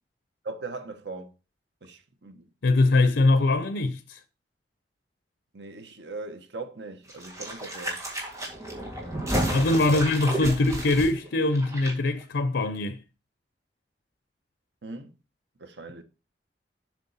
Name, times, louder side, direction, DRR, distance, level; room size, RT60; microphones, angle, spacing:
voice 1, 0.4-1.3 1.8-2.5 5.5-8.0 9.9-10.0 14.8-15.1 15.6-16.0, right 3 dB, 80° right, 1.2 m, -39 dB
voice 2, 2.6-4.2 9.5-13.0, left 2 dB, 90° left, 0.6 m, -22 dB
sound 1, 7.1-11.9 12.2-12.3, right 1 dB, 20° right, 2.1 m, -32 dB
7.4 x 6.0 x 4.1 m
head